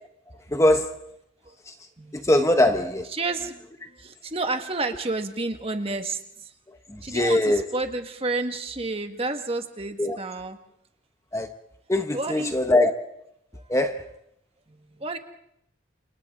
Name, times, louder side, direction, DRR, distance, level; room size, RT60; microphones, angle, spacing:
voice 1, 0.5-1.0 1.7-1.8 2.1-3.1 6.7-7.7 10.0-10.2 11.3-11.5 11.9-13.0 13.7-14.1, left 1 dB, 15° left, 0.9 m, -22 dB
voice 2, 2.0-2.3 3.1-6.5 7.0-10.6 12.1-12.6 13.5-13.7 14.7-15.2, right 3 dB, 30° right, 1.6 m, -31 dB
30.0 x 28.0 x 3.8 m
head